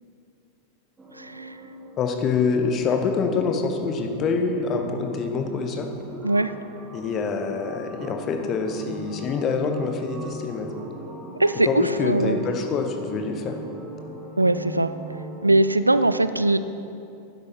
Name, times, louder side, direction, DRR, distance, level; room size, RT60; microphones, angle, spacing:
sound 1, 1.0-15.6, right 1 dB, 15° right, 1.4 m, -40 dB
voice 1, 1.2-1.6 6.2-6.5 11.4-12.4 14.4-14.9 15.4-16.6, right 2 dB, 85° right, 13 dB, 0.3 m, -21 dB
voice 2, 2.0-5.9 6.9-10.7 11.6-13.6, left 5 dB, 30° left, 5 dB, 1.0 m, -25 dB
11.0 x 8.0 x 4.3 m, 2.8 s
figure-of-eight pair, 90°, 0 cm